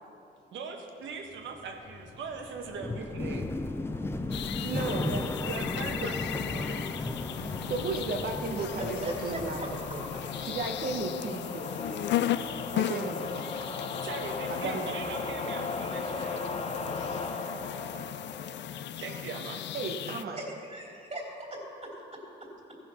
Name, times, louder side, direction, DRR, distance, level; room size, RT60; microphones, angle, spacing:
voice 1, 0.5-3.5 4.9-6.2 6.4-6.9 14.0-16.4 19.0-19.6, right 5 dB, 70° right, 2 dB, 1.4 m, -40 dB
sound 1, 1.4-11.5 11.7-12.6, left 2 dB, 10° left, 0.5 m, -36 dB
sound 2, 3.0-19.5, left 3 dB, 30° left, 0.8 m, -39 dB
sound 3, 4.3-20.2, left 12 dB, 65° left, 0.4 m, -36 dB
voice 2, 4.6-5.2 7.7-10.1 10.4-11.8 12.7-13.7 14.5-15.2 19.7-20.4, right 3 dB, 50° right, 3 dB, 1.1 m, -35 dB
voice 3, 9.0-9.7 20.4-22.8, right 1 dB, 30° right, -2 dB, 3.0 m, -40 dB
15.0 x 5.7 x 5.6 m, 2.7 s
cardioid pair, 90°, 20 cm